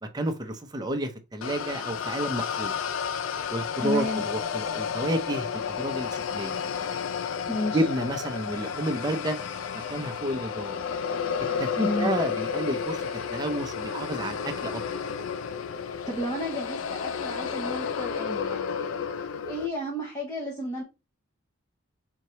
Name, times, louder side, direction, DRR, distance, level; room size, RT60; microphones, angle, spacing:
voice 1, 0.1-2.8 3.5-6.6 7.7-9.4 9.9-10.8 11.6-13.0 13.3-14.8, right 1 dB, 20° right, 0.6 m, -30 dB
sound 1, 1.4-19.7, left 6 dB, 85° left, 0.4 m, -31 dB
voice 2, 3.8-4.2 7.5-7.8 11.7-12.1 16.1-20.8, left 1 dB, 20° left, 0.8 m, -32 dB
4.4 x 2.8 x 3.0 m
head